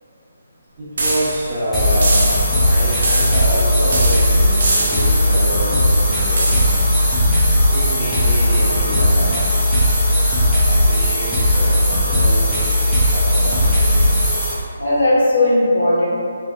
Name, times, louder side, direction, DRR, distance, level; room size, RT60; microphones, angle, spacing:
voice 1, 0.8-2.3 2.6-6.9 7.7-9.5 10.4-12.6 13.1-14.0, equal, 15° right, -15 dB, 1.3 m, -27 dB
sound 1, 1.0-1.6 2.0-2.6 3.0-3.6 3.9-5.2 6.4-6.9, right 2 dB, 60° right, 0.6 m, -23 dB
sound 2, 1.7-14.5, left 1 dB, ahead, 0.6 m, -16 dB
voice 2, 14.8-16.1, left 1 dB, 70° left, -7 dB, 0.9 m, -17 dB
3.4 x 2.6 x 2.4 m, 2.5 s
hypercardioid pair, 160°, 0 cm